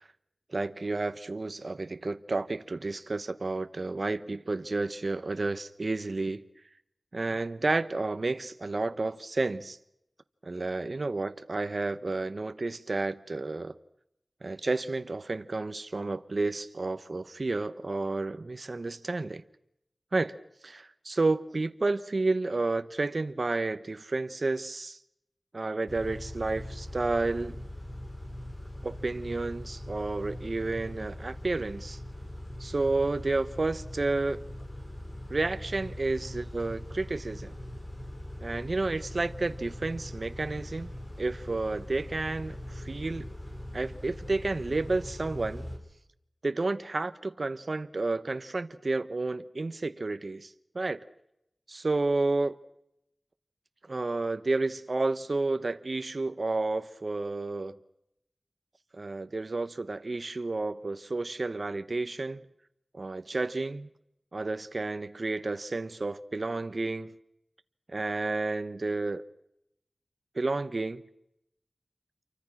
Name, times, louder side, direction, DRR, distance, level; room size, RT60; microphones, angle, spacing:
voice 1, 0.5-6.4 7.1-9.8 10.4-13.7 14.4-19.4 20.1-20.4 20.6-25.0 25.5-27.6 28.8-32.0 32.6-34.4 35.3-37.5 38.4-40.9 41.2-43.3 43.7-45.7 46.4-51.0 51.7-52.6 53.9-57.8 59.0-62.4 62.9-63.9 64.3-67.1 67.9-69.2 70.3-71.0, right 3 dB, 60° right, 0.9 m, -31 dB
Car / Idling / Accelerating revving vroom, 25.9-45.8, left 1 dB, 30° left, 5.5 m, -41 dB
28.0 x 24.0 x 6.1 m
wide cardioid pair, 70°, 0 cm